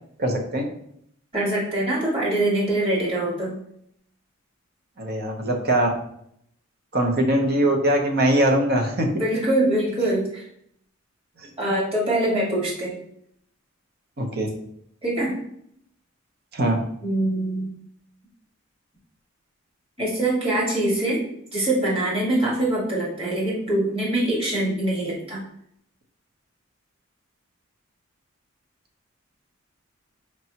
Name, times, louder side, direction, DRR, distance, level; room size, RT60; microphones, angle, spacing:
voice 1, 0.2-0.6 5.0-5.9 6.9-9.1 11.4-11.5 14.2-14.5 16.5-16.8, right 1 dB, 50° right, 3 dB, 0.7 m, -21 dB
voice 2, 1.3-3.6 9.2-10.4 11.6-13.0 15.0-15.3 17.0-17.7 20.0-21.2 21.5-25.4, right 1 dB, 30° right, -5 dB, 1.5 m, -23 dB
4.2 x 3.3 x 2.8 m, 0.71 s
head